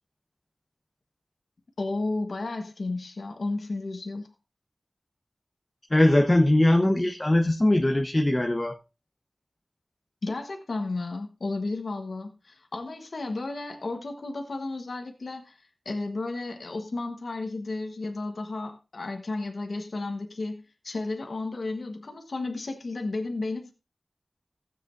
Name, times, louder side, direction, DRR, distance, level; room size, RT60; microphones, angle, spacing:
voice 1, 1.8-4.3 10.2-23.7, left 2 dB, 85° left, 1.3 m, -33 dB
voice 2, 5.9-8.7, left 1 dB, 30° left, 1.0 m, -21 dB
16.0 x 7.8 x 2.7 m
cardioid pair, 40°, 0 cm